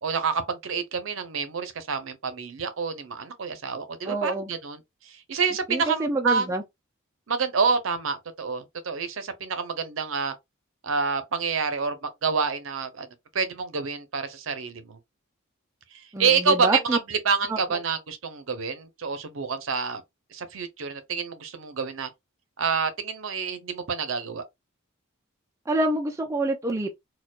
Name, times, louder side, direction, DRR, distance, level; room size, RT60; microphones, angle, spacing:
voice 1, 0.0-6.5 7.3-10.3 10.8-13.1 13.3-15.0 15.9-20.0 20.3-22.1 22.6-24.4, right 5 dB, 70° right, 0.6 m, -28 dB
voice 2, 4.1-4.5 5.7-6.6 16.1-17.0 17.5-17.6 25.7-27.0, right 2 dB, 15° right, 0.3 m, -26 dB
4.3 x 2.3 x 2.3 m
head